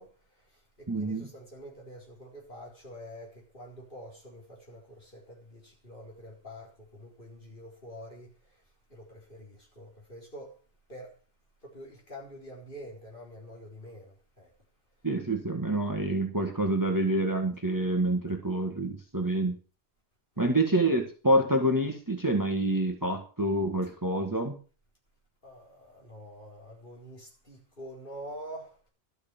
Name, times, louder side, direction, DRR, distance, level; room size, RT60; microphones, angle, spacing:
voice 1, 0.0-8.6 8.9-10.6 10.9-11.2 11.6-14.5 20.3-20.6 25.4-28.8, equal, 50° left, 4.5 m, -46 dB
voice 2, 0.9-1.3 15.0-19.6 20.4-24.6, right 1 dB, 20° right, 1.6 m, -27 dB
12.5 x 6.7 x 6.9 m
omnidirectional pair, 1.1 m